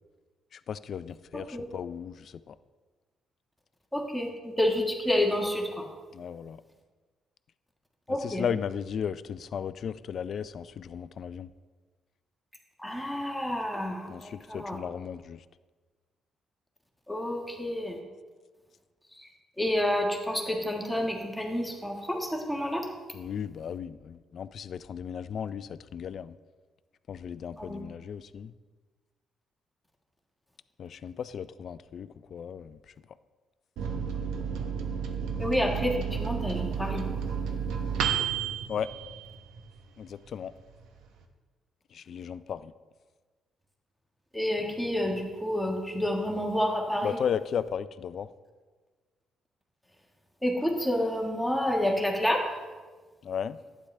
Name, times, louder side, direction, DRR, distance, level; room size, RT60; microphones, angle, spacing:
voice 1, 0.5-2.6 6.1-6.6 8.1-11.5 14.1-15.4 23.1-26.4 27.1-28.5 30.8-32.8 38.7-38.9 40.0-40.5 41.9-42.7 47.0-48.3 53.2-53.6, left 8 dB, 60° left, 15 dB, 0.4 m, -35 dB
voice 2, 3.9-5.9 8.1-8.4 12.8-14.8 17.1-18.0 19.1-19.3 19.6-22.9 27.6-27.8 35.4-37.1 44.3-47.2 50.4-52.5, left 1 dB, ahead, 0 dB, 1.5 m, -29 dB
Microwave oven, 33.8-39.8 40.2-40.3 40.6-41.2, right 7 dB, 90° right, 0.9 m, -32 dB
11.5 x 9.3 x 3.3 m, 1.4 s
cardioid pair, 90°, 0 cm